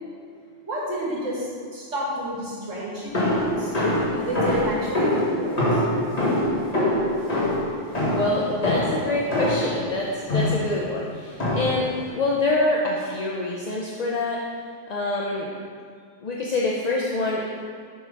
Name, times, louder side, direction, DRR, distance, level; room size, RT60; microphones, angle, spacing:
voice 1, 0.6-3.7 4.1-5.8, right 1 dB, 90° right, -5 dB, 2.0 m, -30 dB
sound 1, 3.1-9.8 10.3-10.8 11.4-11.9, left 1 dB, 35° left, 1.4 m, -24 dB
voice 2, 8.1-14.4 14.9-15.5 16.2-17.5, left 2 dB, 50° left, -3 dB, 0.5 m, -25 dB
6.8 x 3.7 x 5.2 m, 2.1 s
omnidirectional pair, 1.3 m